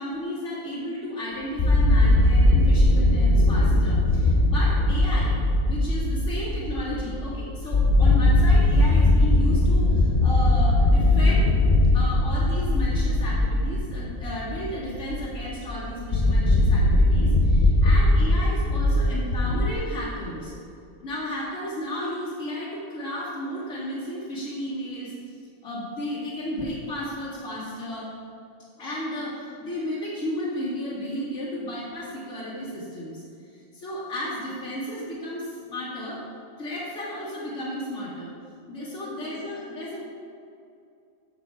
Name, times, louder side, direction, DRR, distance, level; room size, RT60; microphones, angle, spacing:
voice 1, 0.0-5.3 5.7-11.5 11.9-20.5 21.0-25.1 25.6-28.1 28.8-33.2 33.7-36.2 36.6-38.3 38.7-40.0, equal, 80° left, -12 dB, 3.1 m, -33 dB
sound 1, 1.6-19.7, left 1 dB, 40° left, 0.8 m, -20 dB
16.5 x 6.3 x 3.6 m, 2.6 s
omnidirectional pair, 1.3 m